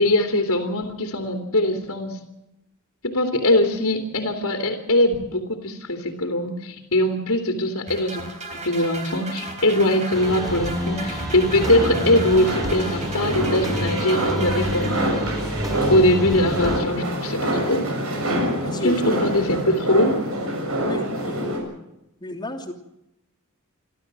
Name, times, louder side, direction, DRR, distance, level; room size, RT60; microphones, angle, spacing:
voice 1, 0.0-2.2 3.0-8.2 8.5-15.2 15.9-17.9 18.8-20.2, left 1 dB, 80° left, 4 dB, 2.9 m, -21 dB
sound 1, 7.9-15.6, right 2 dB, 35° right, 4.0 m, -35 dB
sound 2, 10.1-16.8, equal, 15° right, 6.1 m, -28 dB
sound 3, 11.6-21.6, equal, 75° right, 6.9 m, -26 dB
voice 2, 18.4-19.2 20.8-21.8 22.2-22.7, left 1 dB, 20° left, 1 dB, 2.9 m, -32 dB
28.0 x 13.0 x 7.5 m, 0.87 s
head